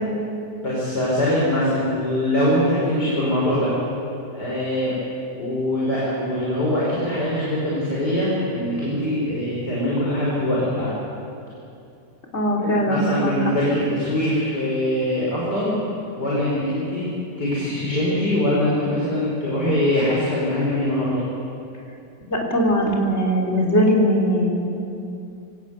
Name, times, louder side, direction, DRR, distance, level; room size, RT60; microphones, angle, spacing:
voice 1, 0.6-3.7 4.3-5.0 5.3-10.9 12.6-15.8 16.2-17.1 17.4-21.2, left 1 dB, 75° left, -6 dB, 5.6 m, -22 dB
voice 2, 12.3-13.3 22.3-24.6, equal, 40° left, -1 dB, 4.1 m, -20 dB
24.0 x 18.5 x 8.2 m, 2.6 s
omnidirectional pair, 1.8 m